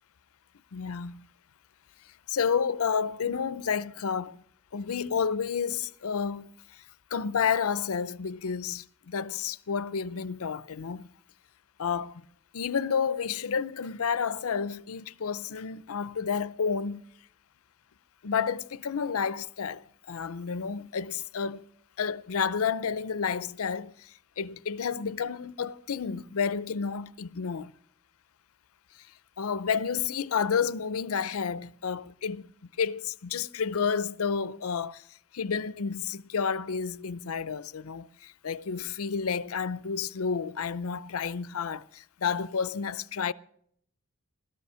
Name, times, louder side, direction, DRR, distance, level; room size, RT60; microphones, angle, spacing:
voice 1, 0.7-1.2 2.3-4.4 4.7-6.5 7.1-11.1 11.8-12.2 12.5-17.0 18.2-21.6 22.0-27.7 29.4-32.5 32.8-35.0 35.3-43.3, left 6 dB, 65° left, 0.6 m, -30 dB
17.0 x 13.0 x 5.6 m
head